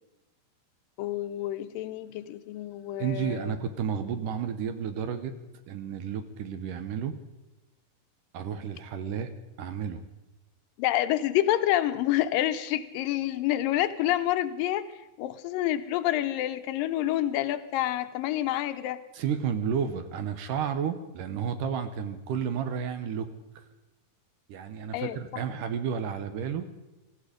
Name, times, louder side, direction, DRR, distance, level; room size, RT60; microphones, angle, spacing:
voice 1, 1.0-3.6 10.8-14.8 15.2-19.0 24.9-25.4, left 13 dB, 80° left, 11 dB, 2.4 m, -28 dB
voice 2, 3.0-5.3 5.7-7.2 8.3-9.3 9.6-10.0 19.1-23.6 24.5-26.7, right 7 dB, 75° right, 9 dB, 2.4 m, -32 dB
18.0 x 15.5 x 5.1 m, 1.0 s
omnidirectional pair, 4.1 m